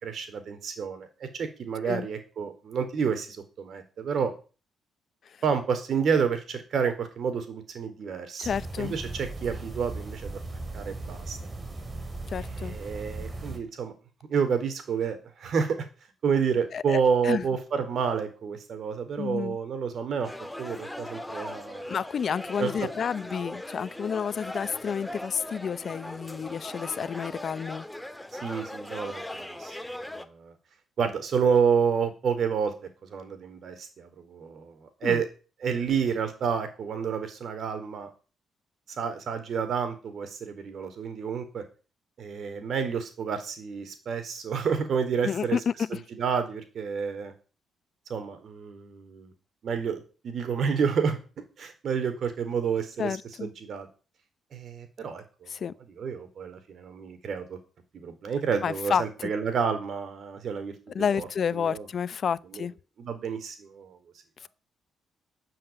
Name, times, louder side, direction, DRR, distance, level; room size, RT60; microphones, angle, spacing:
voice 1, 0.0-4.3 5.4-8.5 8.8-10.4 10.7-11.4 12.6-13.9 14.3-15.8 16.2-20.3 20.6-21.8 22.6-22.9 28.4-29.8 30.1-30.5 31.0-32.7 33.1-35.3 35.6-38.1 39.0-41.6 42.2-45.6 45.9-47.3 48.1-49.3 49.6-51.2 51.6-53.9 54.5-55.5 56.0-57.6 57.9-61.3 61.5-61.8 62.5-62.7 63.0-64.0, right 6 dB, 60° right, 4.6 m, -29 dB
voice 2, 8.4-8.9 12.3-12.8 16.7-17.4 19.2-19.6 21.9-27.9 35.0-35.2 45.2-46.0 53.0-53.5 55.5-55.7 58.6-59.3 60.9-62.7, left 7 dB, 50° left, 0.8 m, -30 dB
sound 1, 8.4-13.6, right 2 dB, 30° right, 4.7 m, -37 dB
sound 2, 20.2-30.2, left 1 dB, 5° left, 1.9 m, -39 dB
13.5 x 7.7 x 9.2 m
cardioid pair, 90°, 0 cm